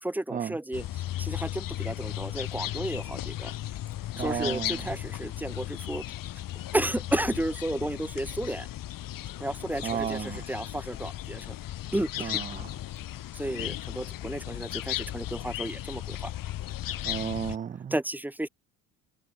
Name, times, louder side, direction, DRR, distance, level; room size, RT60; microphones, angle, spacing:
voice 1, 0.0-3.5 4.2-6.0 6.7-8.7 9.4-11.6 11.9-12.3 13.3-16.3 17.9-18.5, right 1 dB, 5° right, 1.3 m, -32 dB
sound 1, 0.7-17.6, left 13 dB, 60° left, 4.2 m, -36 dB
voice 2, 4.2-4.8 9.8-10.4 12.2-12.7 17.0-17.9, right 8 dB, 20° right, 0.5 m, -33 dB
hypercardioid pair, 70°, 38 cm